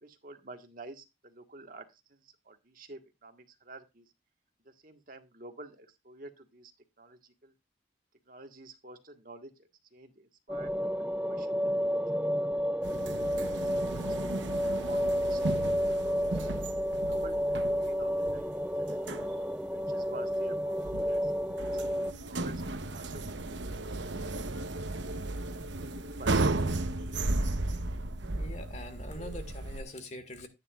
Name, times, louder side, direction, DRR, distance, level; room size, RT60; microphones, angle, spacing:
voice 1, 0.0-4.1 4.6-6.7 7.0-7.5 8.3-11.6 11.9-12.5 13.4-14.1 14.6-15.9 16.2-16.5 17.0-18.4 18.8-19.2 19.6-21.3 21.6-22.0 22.3-23.4 23.7-24.9 25.3-26.5, right 2 dB, 45° right, 5 dB, 1.6 m, -51 dB
sound 1, 10.5-22.1, equal, 5° right, 0.4 m, -31 dB
sound 2, 12.8-29.8, right 2 dB, 70° right, 1.0 m, -35 dB
voice 2, 28.3-30.5, left 1 dB, 35° left, 8 dB, 2.0 m, -43 dB
13.5 x 9.7 x 2.5 m, 0.23 s
head